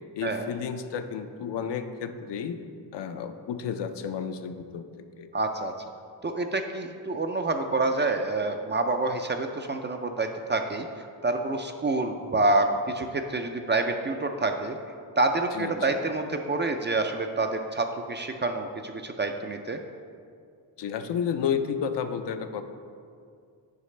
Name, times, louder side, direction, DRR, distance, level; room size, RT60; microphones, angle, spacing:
voice 1, 0.2-2.6 2.9-4.8 5.2-5.3 15.5-15.9 20.8-22.6, left 7 dB, 65° left, 8 dB, 0.6 m, -31 dB
voice 2, 5.3-5.7 6.2-10.9 11.2-14.8 15.2-19.8, right 2 dB, 25° right, 5 dB, 0.3 m, -27 dB
8.2 x 4.9 x 3.2 m, 2.3 s
cardioid pair, 75°, 45 cm